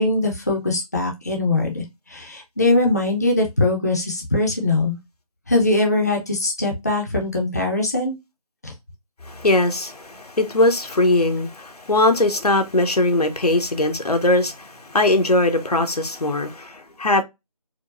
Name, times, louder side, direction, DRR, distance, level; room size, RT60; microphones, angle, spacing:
voice 1, 0.0-5.0 5.5-8.1 8.6-8.7, left 2 dB, 25° left, 0.6 m, -21 dB
voice 2, 9.3-17.2, left 2 dB, 85° left, 0.9 m, -20 dB
4.5 x 2.1 x 2.5 m
figure-of-eight pair, 170°, 19 cm